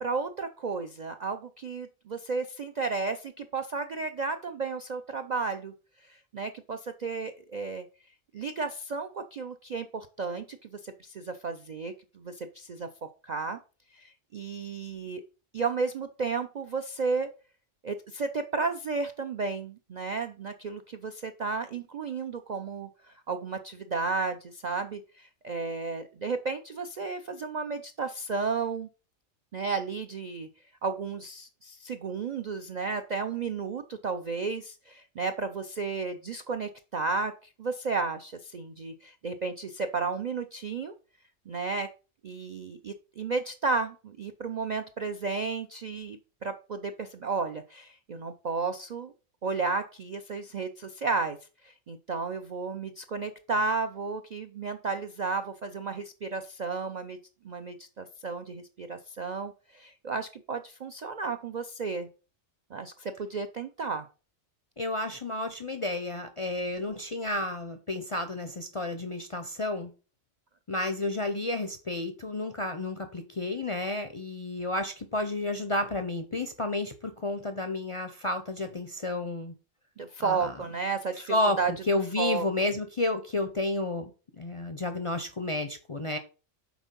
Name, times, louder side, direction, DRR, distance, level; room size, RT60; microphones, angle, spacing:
voice 1, 0.0-7.9 8.3-12.9 13.2-13.6 13.9-15.2 15.5-17.3 17.8-28.9 29.5-30.5 30.8-40.9 41.5-41.9 42.2-49.1 49.4-51.4 51.6-57.2 57.4-62.1 62.7-64.1 80.0-81.7 82.2-82.5, right 4 dB, 55° right, 7 dB, 0.4 m, -33 dB
voice 2, 64.8-69.9 70.7-79.5 80.2-80.5 81.3-81.6 81.9-84.1 84.4-86.2, left 2 dB, 35° left, 7 dB, 0.5 m, -31 dB
6.2 x 4.5 x 5.3 m, 0.34 s
omnidirectional pair, 1.3 m